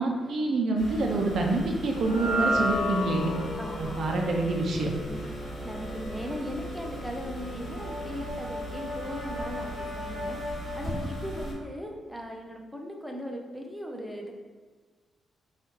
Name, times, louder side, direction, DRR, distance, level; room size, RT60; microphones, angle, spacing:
voice 1, 0.0-3.3 3.8-4.9, right 2 dB, 55° right, 1 dB, 0.4 m, -27 dB
sound 1, 0.8-11.5, right 2 dB, 25° left, 1.5 m, -39 dB
sound 2, 1.9-8.3, equal, 75° left, 0.5 m, -33 dB
voice 2, 3.6-4.0 5.0-10.4 10.8-14.3, equal, ahead, 1 dB, 0.4 m, -38 dB
Brass instrument, 7.4-11.7, left 2 dB, 55° left, 1.3 m, -38 dB
4.4 x 2.4 x 3.0 m, 1.4 s
cardioid pair, 145°, 0 cm